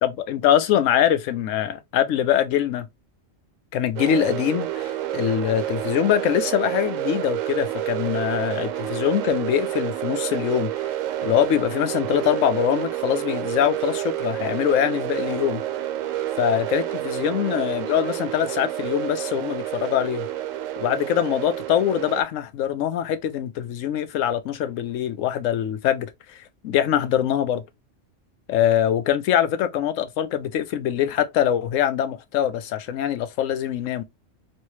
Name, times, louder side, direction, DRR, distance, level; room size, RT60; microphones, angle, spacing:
voice 1, 0.0-2.9 3.7-10.9 11.2-15.6 16.4-20.3 20.8-27.6 28.5-34.0, left 10 dB, 80° left, 1.0 m, -23 dB
sound 1, 4.0-22.2, right 13 dB, 90° right, 1.0 m, -29 dB
3.2 x 2.7 x 3.0 m
omnidirectional pair, 1.3 m